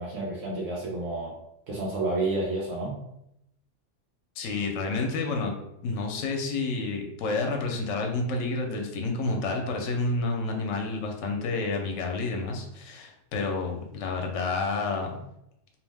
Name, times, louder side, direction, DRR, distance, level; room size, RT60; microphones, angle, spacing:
voice 1, 0.0-1.3 1.7-3.0, right 2 dB, 90° right, -4 dB, 1.0 m, -30 dB
voice 2, 4.4-5.5 5.8-15.2, left 3 dB, 80° left, 2 dB, 0.9 m, -29 dB
2.7 x 2.1 x 3.3 m, 0.80 s
omnidirectional pair, 1.3 m